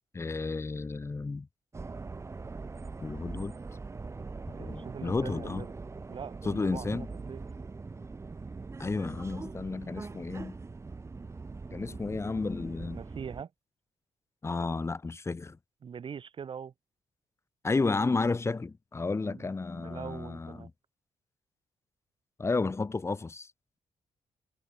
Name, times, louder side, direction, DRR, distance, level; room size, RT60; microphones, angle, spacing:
voice 1, 0.1-1.5 3.0-3.5 4.5-5.6 6.4-7.1 8.8-10.6 11.7-13.0 14.4-15.6 17.6-20.7 22.4-23.5, left 3 dB, 20° left, 3.2 m, -32 dB
sound 1, 1.7-13.4, right 4 dB, 25° right, 3.1 m, -42 dB
voice 2, 4.5-5.7 6.1-7.4 10.1-10.2 12.9-13.5 15.8-16.7 19.2-20.7, right 7 dB, 45° right, 3.2 m, -43 dB
wide cardioid pair, 155°, 12 cm